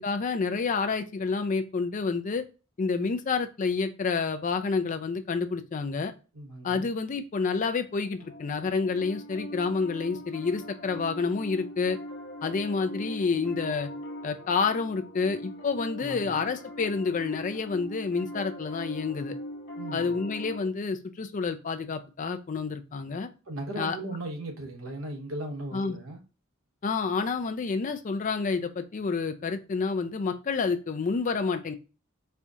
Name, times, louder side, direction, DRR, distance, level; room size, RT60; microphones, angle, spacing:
voice 1, 0.0-2.5 2.8-6.1 6.6-12.0 12.4-13.9 14.2-19.4 19.9-23.3 23.8-24.0 25.7-26.0 26.8-31.7, left 4 dB, 40° left, 0.4 m, -29 dB
voice 2, 6.3-6.9 16.0-16.4 19.8-20.2 23.5-26.2, right 1 dB, 80° right, 1.0 m, -37 dB
Piano, 8.2-20.6, left 1 dB, 55° left, 1.0 m, -41 dB
4.3 x 2.4 x 2.6 m
head